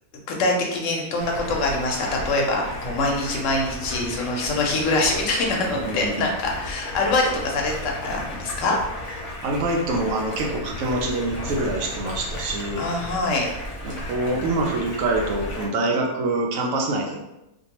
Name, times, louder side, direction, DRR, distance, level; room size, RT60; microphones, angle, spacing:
voice 1, 0.3-8.8 9.0-9.2 12.8-13.5, left 2 dB, 70° left, 0 dB, 0.9 m, -24 dB
Stream, 1.2-15.7, left 1 dB, 45° left, 0.6 m, -34 dB
voice 2, 5.7-6.3 9.4-12.8 13.8-17.2, right 2 dB, 75° right, 1 dB, 0.9 m, -25 dB
2.6 x 2.2 x 2.9 m, 0.92 s
omnidirectional pair, 1.4 m